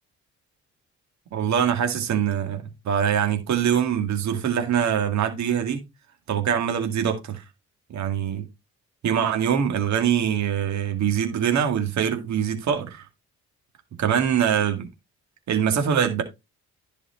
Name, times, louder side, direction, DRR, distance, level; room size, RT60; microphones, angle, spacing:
voice 1, 1.3-5.8 6.3-7.4 7.9-8.4 9.0-13.0 14.0-14.9 15.5-16.2, right 8 dB, 65° right, 2.1 m, -23 dB
11.0 x 4.9 x 4.4 m
cardioid pair, 90°, 30 cm